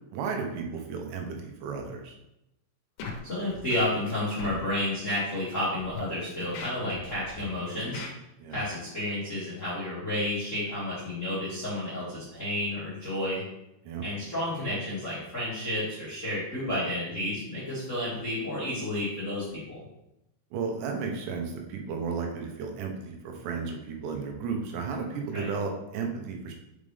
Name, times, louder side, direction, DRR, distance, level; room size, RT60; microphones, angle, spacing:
voice 1, 0.1-2.2 8.4-8.6 13.9-14.0 20.5-26.5, right 5 dB, 85° right, 2 dB, 3.1 m, -33 dB
Scratching (performance technique), 3.0-3.2 3.5-4.1 4.4-4.6 5.1-5.2 5.8-6.0 6.4-7.4 7.8-8.1, left 5 dB, 75° left, 2.6 m, -38 dB
voice 2, 3.2-8.0 8.5-13.4 14.0-19.8 25.3-25.5, left 1 dB, 35° left, -10 dB, 1.1 m, -31 dB
6.4 x 5.4 x 3.3 m, 0.88 s
omnidirectional pair, 5.0 m